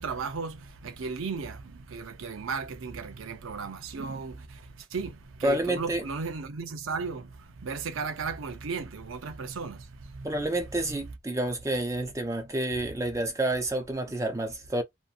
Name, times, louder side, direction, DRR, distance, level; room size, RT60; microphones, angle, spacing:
voice 1, 0.0-10.5 10.9-11.0, right 4 dB, 90° right, 0.5 m, -35 dB
voice 2, 5.4-6.0 10.2-14.8, right 1 dB, 15° right, 0.4 m, -29 dB
2.7 x 2.6 x 2.3 m
head